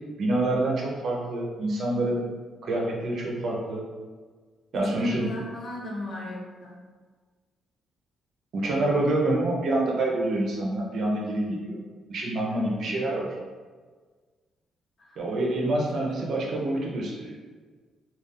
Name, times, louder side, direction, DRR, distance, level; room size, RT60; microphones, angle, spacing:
voice 1, 0.2-2.2 2.6-3.9 4.7-5.3 8.5-11.8 12.1-13.3 15.2-17.4, right 1 dB, 65° right, -2 dB, 0.7 m, -27 dB
voice 2, 4.7-6.8 15.0-15.2 16.2-16.3, left 1 dB, 45° left, -2 dB, 0.8 m, -36 dB
2.5 x 2.4 x 3.5 m, 1.5 s
cardioid pair, 90°, 0 cm